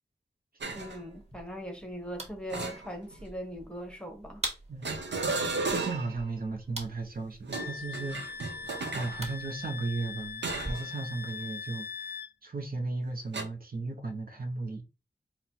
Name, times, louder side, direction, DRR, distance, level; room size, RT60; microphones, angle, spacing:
sound 1, 0.6-1.0 2.5-3.3 4.8-6.2 7.4-9.2 10.4-10.9 11.3-11.5 13.3-13.4, right 3 dB, 90° right, 0.7 m, -34 dB
voice 1, 0.7-4.4, equal, 5° left, 0.9 m, -40 dB
sound 2, 0.7-10.7, right 1 dB, 40° right, 1.4 m, -45 dB
voice 2, 5.7-8.2 8.9-14.8, right 3 dB, 55° right, 0.8 m, -35 dB
Wind instrument woodwind instrument, 7.5-12.3, left 5 dB, 65° left, 0.4 m, -41 dB
4.2 x 2.1 x 4.2 m
wide cardioid pair, 95°, 18 cm